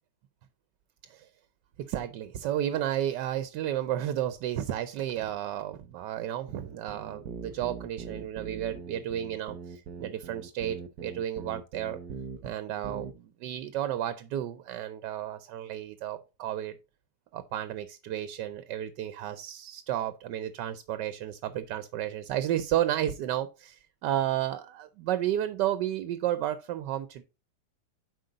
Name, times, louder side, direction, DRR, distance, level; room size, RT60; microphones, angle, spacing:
voice 1, 1.8-12.0 12.4-16.7 17.3-27.2, right 11 dB, 90° right, 1.2 m, -32 dB
sound 1, 6.5-12.5 12.8-13.1, right 6 dB, 70° right, 1.2 m, -41 dB
7.7 x 5.0 x 3.9 m
omnidirectional pair, 1.8 m